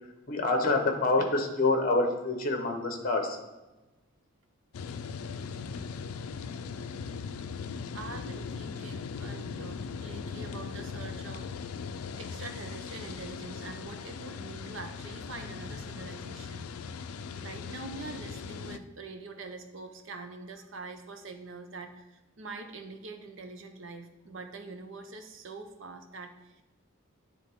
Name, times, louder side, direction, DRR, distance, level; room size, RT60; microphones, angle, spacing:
voice 1, 0.3-3.4, left 2 dB, 40° left, 4 dB, 0.9 m, -26 dB
sound 1, 4.7-18.8, left 5 dB, 85° left, 0.4 m, -39 dB
voice 2, 7.9-11.5 12.2-16.6 17.3-26.6, right 3 dB, 60° right, 6 dB, 0.7 m, -44 dB
9.8 x 3.6 x 3.5 m, 1.1 s
head